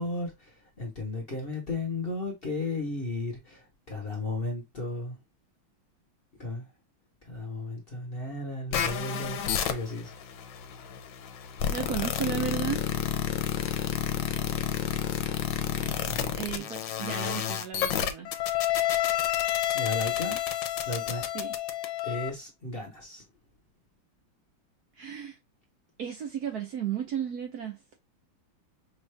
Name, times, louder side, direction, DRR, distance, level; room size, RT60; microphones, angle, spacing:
voice 1, 0.0-5.2 6.4-6.7 7.2-10.1 15.8-16.7 19.7-20.4 20.8-21.2 22.0-23.2, left 2 dB, 35° left, 1.1 m, -35 dB
sound 1, 8.7-22.3, left 10 dB, 70° left, 1.3 m, -30 dB
voice 2, 11.7-12.8 16.4-18.3 21.3-21.5 25.0-25.4 26.0-27.8, right 9 dB, 60° right, 1.1 m, -34 dB
5.5 x 2.4 x 3.3 m
omnidirectional pair, 2.2 m